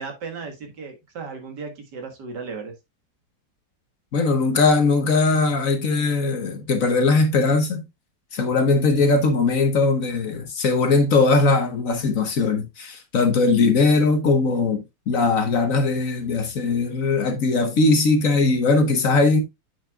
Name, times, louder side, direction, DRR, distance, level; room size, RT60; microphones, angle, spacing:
voice 1, 0.0-2.7, right 4 dB, 65° right, 2.3 m, -35 dB
voice 2, 4.1-7.8 8.3-19.4, left 3 dB, 50° left, 1.3 m, -20 dB
8.5 x 6.2 x 2.3 m
omnidirectional pair, 2.0 m